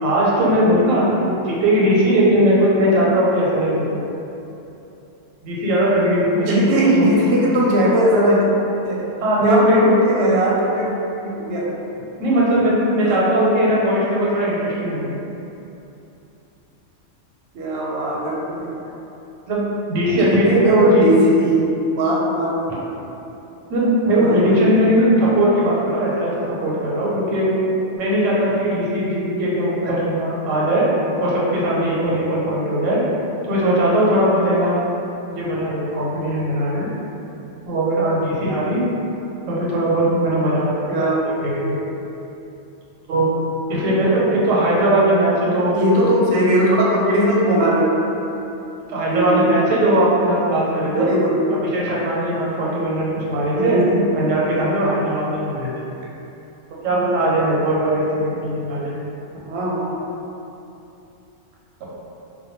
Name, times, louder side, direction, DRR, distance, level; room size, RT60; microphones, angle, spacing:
voice 1, 0.0-4.0 5.4-7.1 9.2-9.7 12.2-15.2 19.5-19.6 19.9-21.1 23.7-27.5 28.0-30.9 31.2-33.0 33.4-34.8 35.3-36.9 37.7-38.8 39.5-41.1 41.4-41.8 43.1-43.3 43.7-45.7 48.9-51.1 51.6-53.8 54.1-55.7 56.8-59.0, right 1 dB, 85° right, -6 dB, 1.0 m, -19 dB
voice 2, 6.3-8.4 8.8-9.1 9.4-10.9 11.2-11.7 13.0-13.2 17.5-18.8 20.2-22.6 24.1-24.6 29.8-30.0 40.9-41.3 41.6-41.8 45.7-48.0 49.1-49.5 50.9-51.5 53.5-54.0 56.9-57.1 59.5-59.9, right 1 dB, 65° right, -5 dB, 0.7 m, -19 dB
2.2 x 2.2 x 2.9 m, 2.9 s
omnidirectional pair, 1.3 m